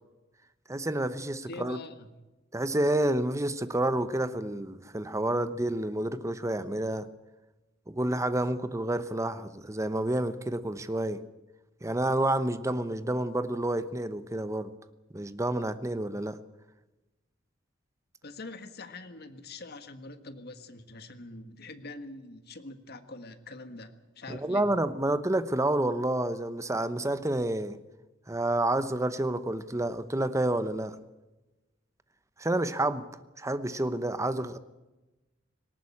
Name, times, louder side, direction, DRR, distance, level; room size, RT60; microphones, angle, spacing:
voice 1, 0.7-1.8 2.5-7.1 7.9-11.2 11.8-14.7 15.1-16.4 24.3-27.8 28.3-31.0 32.4-33.1 33.4-34.6, right 1 dB, 15° right, 0.9 m, -29 dB
voice 2, 1.4-2.1 18.2-24.7, left 2 dB, 55° left, 1.6 m, -44 dB
19.0 x 18.5 x 8.6 m
head